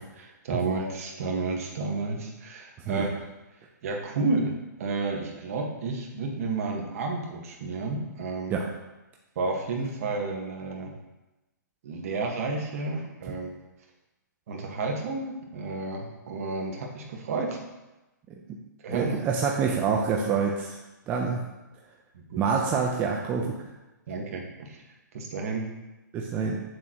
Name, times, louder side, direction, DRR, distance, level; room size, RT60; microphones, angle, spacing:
voice 1, 0.0-3.2 3.8-4.5 4.8-8.6 9.3-10.9 11.8-13.5 14.5-17.6 18.8-19.2 22.1-22.4 24.1-24.8 25.1-25.6, right 3 dB, 50° right, 1 dB, 1.6 m, -31 dB
voice 2, 18.9-20.8 21.1-21.4 22.4-23.5 26.1-26.6, right 5 dB, 20° right, -1 dB, 0.6 m, -26 dB
8.4 x 7.2 x 3.0 m, 1.0 s
hypercardioid pair, 150°, 10 cm